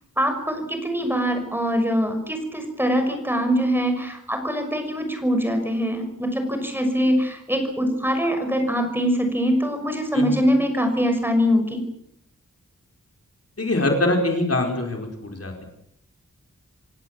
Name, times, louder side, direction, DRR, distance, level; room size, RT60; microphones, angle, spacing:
voice 1, 0.2-11.8, equal, 5° right, 5 dB, 5.9 m, -23 dB
voice 2, 13.6-15.6, left 2 dB, 50° left, 2 dB, 4.8 m, -23 dB
28.0 x 16.5 x 7.7 m, 0.72 s
wide cardioid pair, 80°, 31 cm